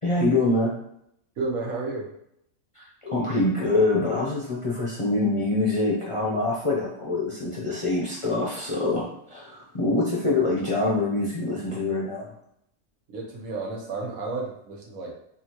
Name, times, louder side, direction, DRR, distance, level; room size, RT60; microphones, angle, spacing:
voice 1, 0.0-0.7 2.8-12.3, left 2 dB, 35° left, -5 dB, 0.5 m, -25 dB
voice 2, 1.4-2.0 13.1-15.1, right 3 dB, 90° right, -2 dB, 1.4 m, -31 dB
5.4 x 2.5 x 2.9 m, 0.75 s
omnidirectional pair, 1.4 m